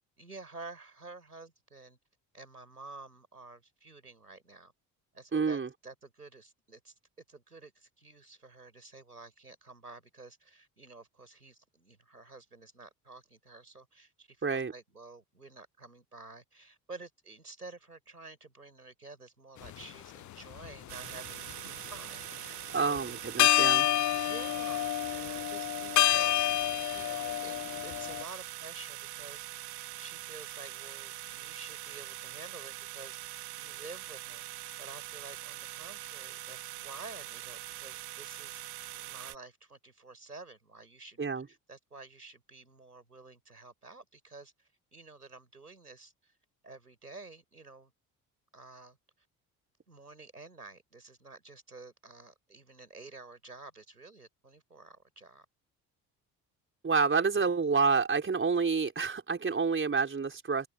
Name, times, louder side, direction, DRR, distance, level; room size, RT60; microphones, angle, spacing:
voice 1, 0.2-2.0 2.3-4.7 5.1-6.9 7.3-23.2 24.1-29.7 29.9-46.3 46.6-47.9 48.5-49.0 49.9-55.5, right 3 dB, 90° right, 7.0 m, -50 dB
voice 2, 5.3-5.7 14.4-14.7 22.7-23.9 41.2-41.5 56.8-60.7, right 5 dB, 25° right, 5.0 m, -28 dB
sound 1, 19.6-19.8 20.5-21.5 23.0-23.1 23.4-28.2, left 14 dB, 40° left, 0.8 m, -28 dB
sound 2, 20.9-39.4, right 16 dB, 55° right, 4.7 m, -43 dB
figure-of-eight pair, 50°, 45 cm